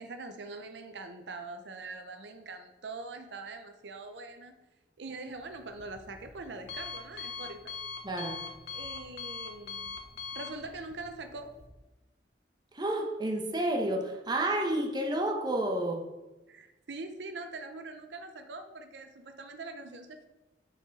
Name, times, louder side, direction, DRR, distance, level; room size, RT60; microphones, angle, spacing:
voice 1, 0.0-4.5 5.0-7.8 8.7-10.0 10.3-11.5 16.5-20.3, right 3 dB, 80° right, 7 dB, 0.7 m, -43 dB
Alarm, 5.3-11.7, left 5 dB, 70° left, 0.9 m, -43 dB
voice 2, 8.0-8.5 12.7-16.1, right 1 dB, 25° right, 2 dB, 1.0 m, -30 dB
6.8 x 5.0 x 5.2 m, 1.1 s
head